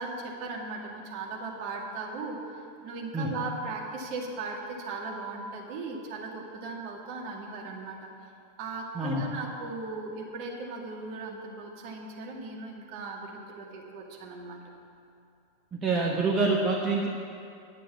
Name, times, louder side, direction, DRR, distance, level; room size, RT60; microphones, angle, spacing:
voice 1, 0.0-8.1 8.6-14.6, right 3 dB, 45° right, -1 dB, 1.8 m, -37 dB
voice 2, 15.8-17.1, right 3 dB, 20° right, -2 dB, 1.2 m, -26 dB
10.5 x 8.2 x 7.3 m, 2.4 s
figure-of-eight pair, 90°, 0 cm